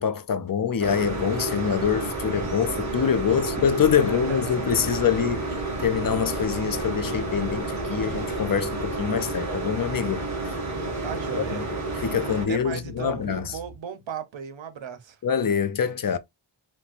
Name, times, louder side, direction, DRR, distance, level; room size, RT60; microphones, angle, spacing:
voice 1, 0.0-5.4 5.8-10.2 11.4-11.6 12.0-13.6 15.2-16.2, left 7 dB, 50° left, 0.5 m, -25 dB
sound 1, 0.8-12.5, right 2 dB, 40° right, 1.9 m, -30 dB
sound 2, 1.7-9.0, left 1 dB, 20° left, 0.8 m, -43 dB
voice 2, 3.9-4.4 11.0-11.7 12.5-15.2, right 7 dB, 80° right, 0.7 m, -36 dB
sound 3, 4.8-13.8, right 2 dB, 85° left, 1.2 m, -46 dB
4.2 x 2.1 x 2.4 m
wide cardioid pair, 95°, 45 cm